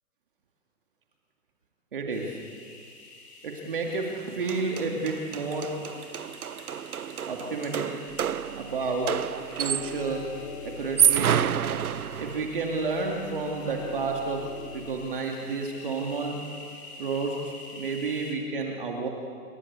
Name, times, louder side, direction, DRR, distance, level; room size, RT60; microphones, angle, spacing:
voice 1, 1.9-2.4 3.4-5.7 7.3-7.9 8.5-9.2 9.5-11.4 12.2-16.4 17.0-19.1, right 3 dB, 35° right, 1 dB, 2.4 m, -31 dB
sound 1, 2.1-18.4, left 2 dB, 40° left, 5.0 m, -48 dB
sound 2, 4.2-4.3 4.5-10.1 10.8-12.6, right 9 dB, 65° right, 0.7 m, -28 dB
sound 3, 8.1-14.9, left 3 dB, 20° left, 1.2 m, -43 dB
28.5 x 24.0 x 8.3 m, 2.1 s
hypercardioid pair, 175°, 47 cm